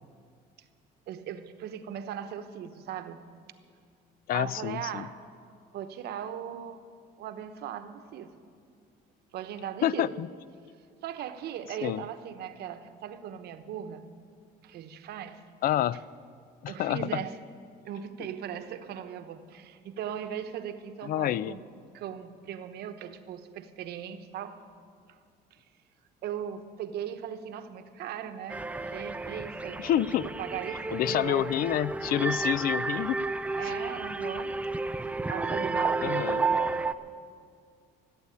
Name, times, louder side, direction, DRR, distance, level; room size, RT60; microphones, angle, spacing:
voice 1, 1.1-3.2 4.3-5.2 5.7-6.8 7.2-8.3 9.3-10.2 11.0-14.1 14.6-15.4 16.7-17.4 17.8-21.7 21.9-24.6 25.1-25.2 25.5-25.6 26.2-29.9 30.4-31.5 33.5-34.6 35.3-36.9, right 9 dB, 75° right, 10 dB, 1.0 m, -38 dB
voice 2, 4.3-5.1 9.8-10.3 11.8-12.0 15.6-16.0 16.6-17.2 21.0-21.6 29.8-30.3 30.9-33.2 36.0-36.4, left 12 dB, 60° left, 19 dB, 0.4 m, -28 dB
sound 1, 28.5-36.9, right 3 dB, 10° right, 0.4 m, -31 dB
15.5 x 8.2 x 9.8 m, 2.2 s
cardioid pair, 110°, 17 cm